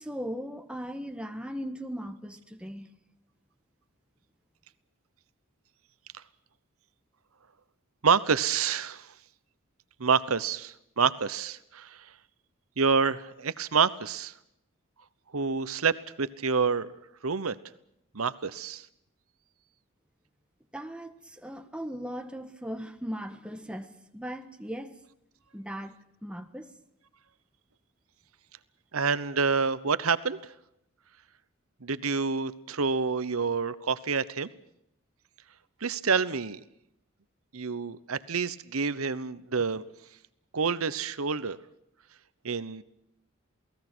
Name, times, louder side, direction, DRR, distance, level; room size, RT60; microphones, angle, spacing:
voice 1, 0.0-2.9 20.7-23.9 24.1-25.0 25.5-25.9 26.2-26.7, equal, 5° right, 7 dB, 1.6 m, -38 dB
voice 2, 8.0-9.1 10.0-12.1 12.8-14.3 15.3-16.9 17.2-17.6 18.1-18.9 28.9-30.5 31.8-34.5 35.8-36.6 37.5-39.8 40.5-41.6 42.4-42.8, right 5 dB, 80° right, 15 dB, 1.0 m, -28 dB
28.5 x 19.0 x 6.2 m, 0.79 s
head